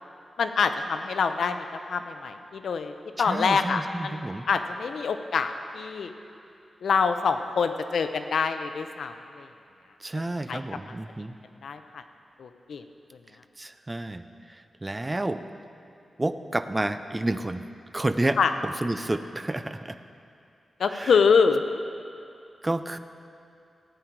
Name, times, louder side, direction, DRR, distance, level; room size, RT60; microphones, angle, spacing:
voice 1, 0.4-2.9 3.2-6.1 6.8-9.5 10.5-10.6 11.6-12.0 12.4-12.8 18.4-18.5 20.8-21.6, left 5 dB, 90° left, 8 dB, 0.6 m, -25 dB
voice 2, 3.2-4.5 10.0-11.4 13.6-15.4 16.2-17.6 17.9-20.0 20.9-21.1 22.6-23.0, right 2 dB, 20° right, 10 dB, 0.5 m, -30 dB
15.5 x 9.1 x 4.6 m, 2.6 s
wide cardioid pair, 130°, 0 cm